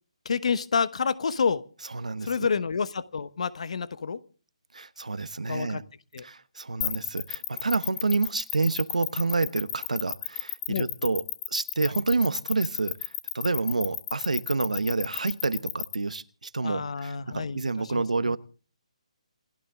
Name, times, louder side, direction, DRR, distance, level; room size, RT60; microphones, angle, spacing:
voice 1, 0.2-1.6 2.2-4.2 5.5-5.8 6.1-6.3 10.7-10.9 16.6-18.4, left 5 dB, 65° left, 16 dB, 1.1 m, -29 dB
voice 2, 1.9-2.5 4.7-5.8 6.2-18.4, right 3 dB, 90° right, 15 dB, 1.1 m, -28 dB
sound 1, 6.8-15.9, left 17 dB, 25° left, 0.8 m, -32 dB
28.5 x 12.0 x 3.6 m, 0.39 s
figure-of-eight pair, 150°, 4 cm